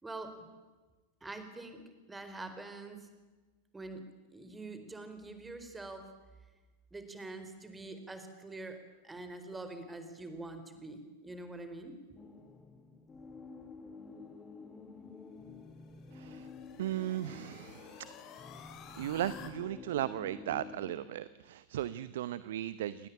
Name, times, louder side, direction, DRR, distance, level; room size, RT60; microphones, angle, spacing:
voice 1, 1.2-3.1 3.7-4.0 4.3-6.1 6.9-8.8 9.0-11.9, right 2 dB, 10° right, 8 dB, 4.4 m, -45 dB
sound 1, 12.1-20.9, left 4 dB, 15° left, 2.6 m, -50 dB
sound 2, 15.5-19.5, left 8 dB, 35° left, 4.1 m, -53 dB
voice 2, 16.1-16.5 16.8-18.1 19.0-23.1, right 12 dB, 55° right, 17 dB, 0.8 m, -36 dB
29.0 x 20.0 x 8.9 m, 1.3 s
figure-of-eight pair, 90°, 0 cm